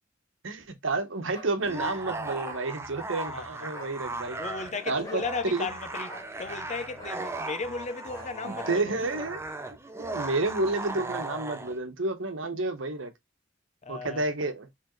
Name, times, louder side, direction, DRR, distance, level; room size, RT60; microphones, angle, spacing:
voice 1, 0.4-4.4 4.9-5.7 8.4-9.4 10.0-13.1 13.9-14.7, right 2 dB, 75° right, 1.1 m, -30 dB
sound 1, 1.3-1.5 2.4-2.7 3.7-4.0 5.0-5.3 6.1-6.3 7.0-7.2 8.1-8.4 8.6-8.9 9.1-9.4, left 1 dB, 15° left, 1.5 m, -44 dB
sound 2, 1.6-11.2, right 1 dB, 60° left, 1.4 m, -56 dB
sound 3, 1.6-11.8, right 2 dB, 15° right, 0.6 m, -37 dB
voice 2, 3.3-3.7 4.3-9.0 13.8-14.3, left 4 dB, 35° left, 0.6 m, -36 dB
4.7 x 3.5 x 3.1 m
head